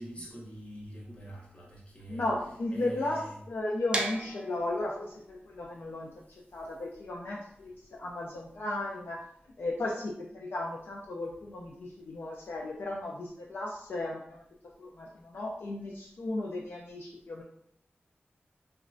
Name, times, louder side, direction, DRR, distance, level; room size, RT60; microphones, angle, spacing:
voice 1, 0.0-2.3 2.7-3.4, right 1 dB, 30° left, -3 dB, 0.8 m, -45 dB
voice 2, 2.1-6.1 6.5-9.2 9.6-14.4 14.8-17.4, left 2 dB, 60° left, -2 dB, 0.3 m, -35 dB
sound 1, 3.9-9.7, right 1 dB, 25° right, 0.4 m, -39 dB
3.0 x 2.1 x 2.5 m, 0.70 s
wide cardioid pair, 125°, 4 cm